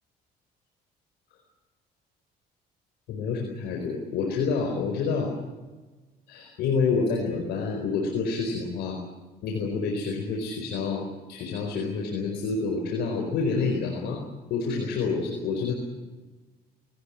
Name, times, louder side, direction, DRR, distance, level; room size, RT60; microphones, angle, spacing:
voice 1, 3.1-5.3 6.3-9.0 9.4-14.2 14.5-15.7, left 4 dB, 80° left, 2 dB, 4.6 m, -28 dB
20.0 x 18.5 x 9.7 m, 1.2 s
cardioid pair, 110°, 17 cm